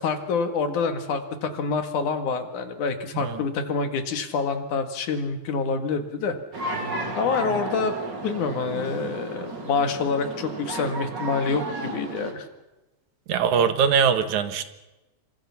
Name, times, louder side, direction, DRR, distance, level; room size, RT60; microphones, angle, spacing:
voice 1, 0.0-7.9 8.2-12.5, left 4 dB, 85° left, 7 dB, 3.5 m, -27 dB
sound 1, 6.5-12.3, right 2 dB, 35° right, 3.3 m, -33 dB
voice 2, 13.3-14.6, right 7 dB, 75° right, 9 dB, 2.9 m, -21 dB
28.0 x 25.5 x 5.9 m, 1.1 s
omnidirectional pair, 3.4 m